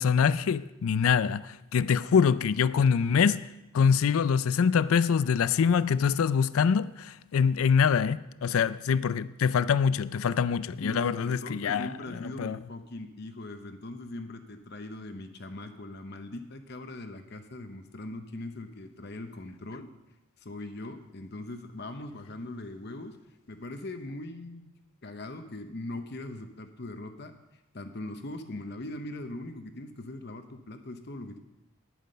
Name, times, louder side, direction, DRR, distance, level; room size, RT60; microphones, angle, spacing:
voice 1, 0.0-3.4 3.7-11.9 12.2-12.6, left 6 dB, 75° left, 0.4 m, -24 dB
voice 2, 10.8-19.9 20.4-23.2 23.5-24.7 25.0-27.3 27.7-31.4, left 2 dB, 50° left, 0.8 m, -40 dB
10.5 x 9.2 x 6.6 m
head